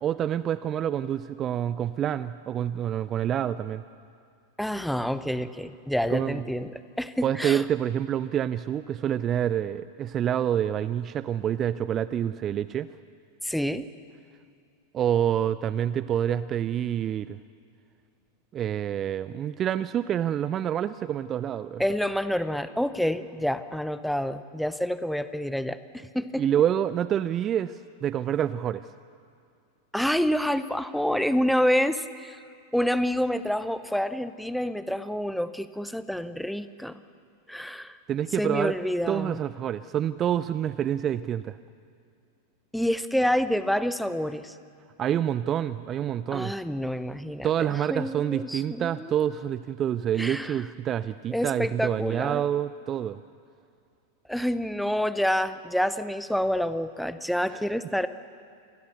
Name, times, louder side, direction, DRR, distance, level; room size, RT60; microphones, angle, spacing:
voice 1, 0.0-3.8 6.1-6.4 7.2-12.9 14.9-17.4 18.5-21.8 26.4-28.9 38.1-38.8 39.1-41.6 45.0-46.5 47.4-53.2 57.5-57.6, right 10 dB, 30° right, 16 dB, 0.5 m, -27 dB
voice 2, 4.6-7.6 13.4-13.9 21.8-26.4 29.9-32.4 32.7-37.0 37.5-38.0 38.4-39.4 42.7-44.5 46.3-47.5 47.8-49.2 50.2-50.6 51.3-52.5 54.3-58.1, equal, ahead, 13 dB, 0.9 m, -28 dB
27.5 x 20.5 x 6.8 m, 2.3 s
figure-of-eight pair, 90°, 0 cm